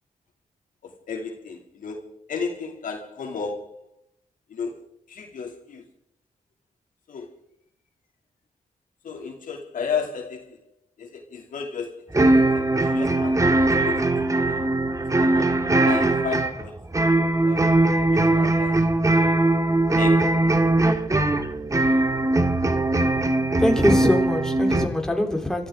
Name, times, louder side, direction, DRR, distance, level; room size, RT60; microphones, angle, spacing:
voice 1, 0.8-3.8 4.5-4.8 5.1-5.8 7.1-7.3 9.0-10.6 11.0-14.0 14.4-14.6 15.2-15.5 15.8-16.7 17.4-17.7 18.1-18.7 20.0-20.4, left 5 dB, 80° left, 2.7 m, -33 dB
sound 1, 12.1-24.9, right 2 dB, 25° right, 1.7 m, -20 dB
voice 2, 23.6-25.7, left 1 dB, 5° left, 3.5 m, -22 dB
27.0 x 13.5 x 3.7 m
cardioid pair, 75°, 14 cm